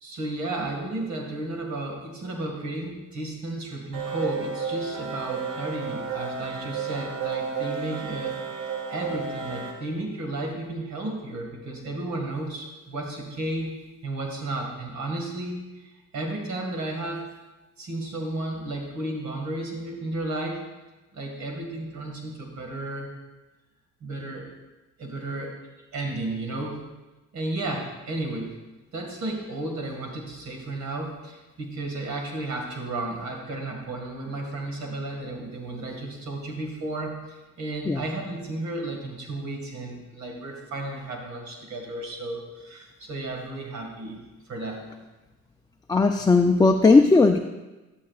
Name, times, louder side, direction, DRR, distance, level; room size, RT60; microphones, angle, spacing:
voice 1, 0.0-13.8 14.0-17.2 17.8-20.6 21.1-23.1 24.0-24.5 25.0-25.5 25.9-26.8 27.3-28.5 28.9-44.2 44.5-44.8, right 2 dB, 70° right, 1 dB, 2.1 m, -33 dB
sound 1, 3.9-9.7, right 5 dB, 90° right, 1.4 m, -32 dB
voice 2, 45.9-47.4, left 3 dB, 15° left, 4 dB, 0.4 m, -17 dB
11.5 x 11.0 x 2.4 m, 1.1 s
cardioid pair, 90°, 30 cm